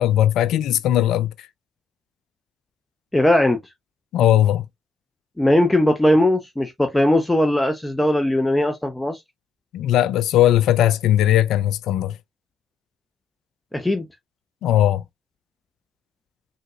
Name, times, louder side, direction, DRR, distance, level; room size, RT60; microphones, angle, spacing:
voice 1, 0.0-1.5 4.1-4.6 9.7-12.2 14.6-15.0, left 12 dB, 70° left, 0.3 m, -18 dB
voice 2, 3.1-3.6 5.4-9.2 13.7-14.1, left 1 dB, 15° left, 0.7 m, -19 dB
3.8 x 2.6 x 2.3 m
hypercardioid pair, 50°, 0 cm